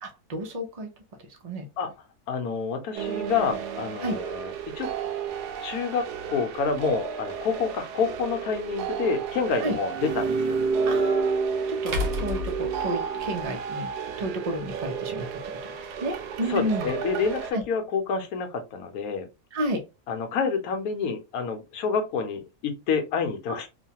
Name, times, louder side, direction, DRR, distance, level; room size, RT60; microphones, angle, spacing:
voice 1, 0.0-0.9 1.4-1.6 4.0-4.2 9.6-9.8 10.8-11.3 11.7-13.9 14.2-15.4 16.0-16.9 17.5-17.6 19.5-19.8, right 1 dB, 70° right, 0.3 m, -31 dB
voice 2, 2.3-4.9 5.6-10.6 16.5-19.3 20.1-23.7, left 5 dB, 70° left, 1.1 m, -28 dB
sound 1, 3.0-17.5, right 6 dB, 90° right, 1.1 m, -31 dB
sound 2, 8.0-8.1 10.7-10.8 11.9-13.5, left 3 dB, 55° right, 0.8 m, -31 dB
3.0 x 2.2 x 2.7 m
omnidirectional pair, 1.7 m